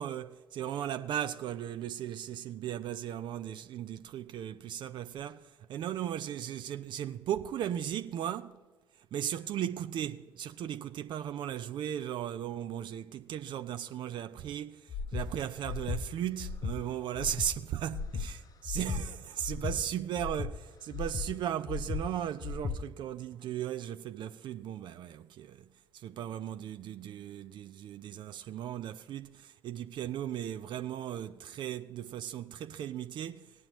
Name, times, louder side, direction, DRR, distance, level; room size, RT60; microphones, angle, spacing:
voice 1, 0.0-8.6 9.1-25.7 25.9-33.5, right 10 dB, 55° right, 0.5 m, -37 dB
Breathing, 14.9-15.3 15.6-16.0 16.4-16.8 17.1-17.5 17.9-18.3 18.6-19.0 19.4-19.8 20.1-20.5 20.9-21.3 21.7-22.0 22.4-22.8, left 5 dB, 45° left, 0.8 m, -35 dB
17.5 x 10.5 x 3.0 m
hypercardioid pair, 50°, 9 cm